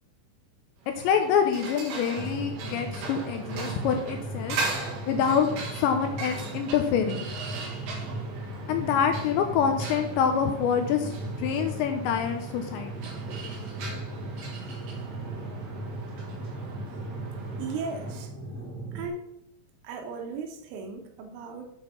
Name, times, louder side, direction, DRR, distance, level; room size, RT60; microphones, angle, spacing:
sound 1, 0.8-18.3, right 4 dB, 60° right, 2.9 m, -39 dB
voice 1, 0.9-4.6 5.0-5.5 5.8-7.3 8.7-12.9, left 7 dB, 80° left, 6 dB, 2.7 m, -26 dB
sound 2, 2.2-19.1, right 1 dB, 5° left, 1.1 m, -37 dB
voice 2, 17.6-18.3 19.0-19.3 19.8-21.7, right 4 dB, 80° right, 4 dB, 3.7 m, -36 dB
8.6 x 5.8 x 5.8 m, 0.78 s
omnidirectional pair, 5.7 m